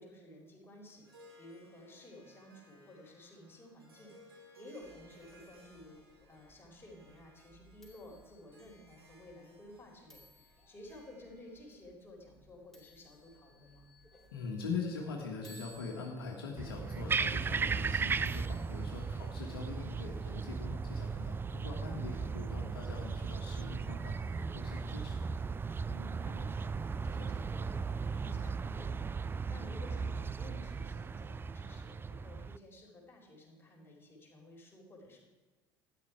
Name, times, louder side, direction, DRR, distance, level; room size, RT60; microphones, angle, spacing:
voice 1, 0.0-6.0 6.3-13.9 21.9-22.2 25.8-35.2, left 1 dB, 20° left, -2 dB, 4.3 m, -54 dB
Harp, 0.9-11.8, equal, 85° right, 2.3 m, -61 dB
sound 1, 4.8-20.1, equal, ahead, 4.1 m, -63 dB
voice 2, 14.3-25.3, left 4 dB, 75° left, 0 dB, 1.6 m, -42 dB
sound 2, 16.6-32.6, right 5 dB, 15° right, 0.4 m, -36 dB
12.5 x 10.0 x 4.7 m, 1.2 s
figure-of-eight pair, 65°, 12 cm